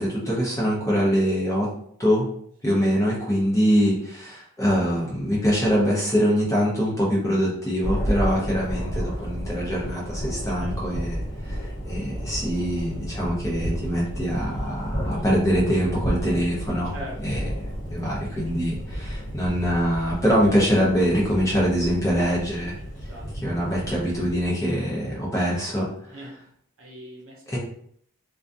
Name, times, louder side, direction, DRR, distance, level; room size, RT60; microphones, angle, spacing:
voice 1, 0.0-1.7 2.0-2.3 2.6-16.9 17.2-17.4 17.9-22.7 23.4-26.3 27.5-27.6, equal, 15° left, -6 dB, 0.6 m, -24 dB
Thunder, 7.8-24.5, equal, 55° left, 0.9 m, -32 dB
voice 2, 16.9-17.4 22.9-23.5 26.1-26.4 26.8-27.6, equal, 65° right, -2 dB, 0.7 m, -42 dB
2.5 x 2.3 x 2.5 m, 0.64 s
head